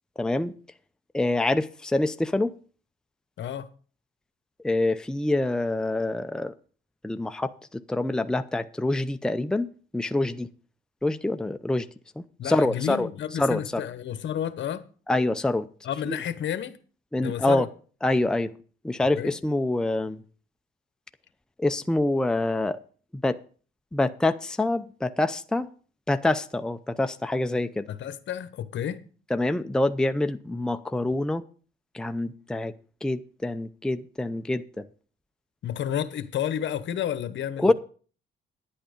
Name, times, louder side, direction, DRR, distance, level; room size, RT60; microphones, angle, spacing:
voice 1, 0.2-0.5 1.1-2.5 4.6-6.5 7.0-9.7 9.9-10.5 11.0-11.9 12.2-13.1 13.4-13.8 15.1-15.7 16.0-16.2 17.1-17.7 18.0-18.5 18.8-20.2 21.6-22.8 23.1-23.4 23.9-25.7 26.1-27.9 29.3-31.4 31.9-32.7 33.0-34.8 37.6-37.7, left 2 dB, 5° left, 0.5 m, -26 dB
voice 2, 3.4-3.7 12.4-14.8 15.8-16.8 17.1-17.7 19.2-19.3 27.9-29.0 35.6-37.7, left 10 dB, 65° left, 1.1 m, -31 dB
10.5 x 8.7 x 5.1 m
cardioid pair, 90°, 20 cm